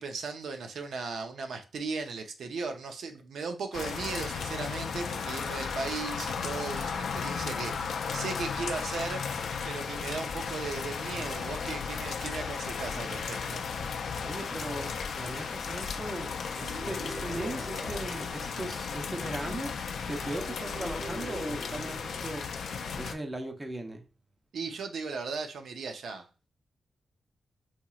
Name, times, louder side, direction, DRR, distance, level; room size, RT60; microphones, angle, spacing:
voice 1, 0.0-9.3 9.6-13.6 24.5-26.3, right 4 dB, 85° right, 0.5 m, -37 dB
sound 1, 3.7-23.1, left 6 dB, 80° left, 0.4 m, -35 dB
voice 2, 14.2-19.7 20.1-24.0, right 1 dB, 20° right, 0.5 m, -38 dB
sound 2, 16.6-19.5 20.1-23.0, right 1 dB, 50° right, 1.7 m, -43 dB
4.3 x 2.8 x 2.3 m
wide cardioid pair, 140°, 0 cm